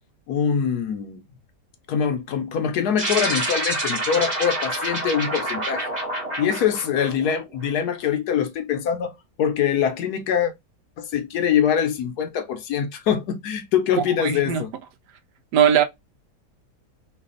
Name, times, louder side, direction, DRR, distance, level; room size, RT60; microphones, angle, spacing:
voice 1, 0.3-1.2 1.9-5.9 6.4-9.1 9.4-10.5 11.0-14.7, left 8 dB, 75° left, 1.2 m, -23 dB
sound 1, 3.0-7.7, right 1 dB, 30° right, 1.2 m, -28 dB
voice 2, 14.0-14.6 15.5-15.8, right 9 dB, 85° right, 1.2 m, -19 dB
3.3 x 2.4 x 3.7 m
omnidirectional pair, 1.8 m